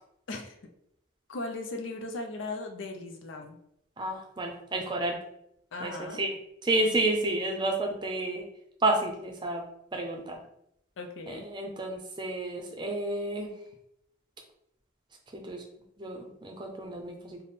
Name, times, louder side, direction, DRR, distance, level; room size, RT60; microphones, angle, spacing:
voice 1, 1.3-3.6 5.7-6.2 11.0-11.5, left 2 dB, 85° left, 4 dB, 0.5 m, -37 dB
voice 2, 4.0-5.2 5.8-6.3 6.6-8.4 8.8-9.6 9.9-10.4 11.3-13.5 15.3-15.6 16.0-17.4, right 2 dB, 25° right, 2 dB, 0.5 m, -30 dB
3.4 x 2.1 x 4.1 m, 0.78 s
head